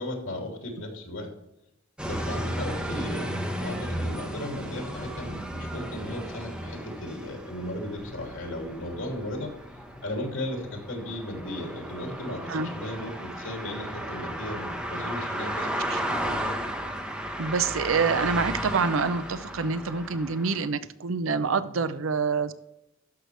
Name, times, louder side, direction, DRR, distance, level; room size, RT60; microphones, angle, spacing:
voice 1, 0.0-1.3 2.0-9.5 10.0-16.5, left 1 dB, 85° left, 2 dB, 2.7 m, -36 dB
sound 1, 2.0-20.7, equal, 5° right, 1.0 m, -34 dB
voice 2, 17.4-22.5, right 5 dB, 85° right, 13 dB, 0.6 m, -26 dB
12.5 x 6.5 x 3.3 m, 0.87 s
head